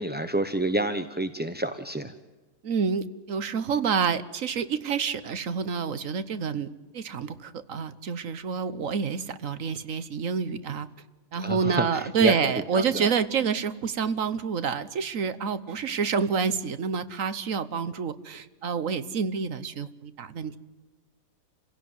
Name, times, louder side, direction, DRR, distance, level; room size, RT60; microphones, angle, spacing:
voice 1, 0.0-2.1 11.4-12.3 12.7-13.1, right 1 dB, 10° right, 8 dB, 0.6 m, -28 dB
voice 2, 2.6-10.9 11.3-20.6, right 6 dB, 55° right, 13 dB, 1.3 m, -28 dB
29.0 x 16.5 x 9.4 m, 1.2 s
omnidirectional pair, 1.7 m